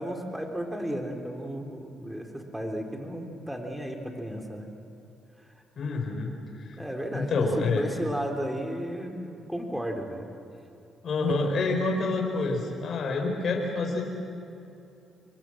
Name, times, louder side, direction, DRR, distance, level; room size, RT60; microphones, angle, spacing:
voice 1, 0.0-4.7 6.8-10.3 11.3-11.5, equal, 5° right, 3 dB, 3.3 m, -34 dB
voice 2, 5.8-6.3 6.6-6.8 7.1-7.8 11.0-14.0, left 3 dB, 55° left, 1 dB, 4.5 m, -27 dB
28.0 x 23.0 x 7.6 m, 2.7 s
cardioid pair, 90°, 0 cm